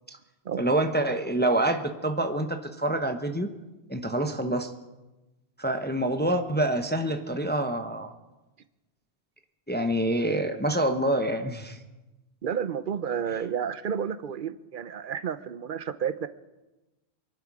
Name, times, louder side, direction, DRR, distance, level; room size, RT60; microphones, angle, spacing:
voice 1, 0.6-3.5 3.9-4.7 5.6-8.1 9.7-11.8, right 1 dB, 10° left, 6 dB, 0.8 m, -26 dB
voice 2, 12.4-16.3, right 7 dB, 55° right, 13 dB, 0.8 m, -31 dB
23.5 x 11.5 x 4.8 m, 1.1 s
omnidirectional pair, 1.1 m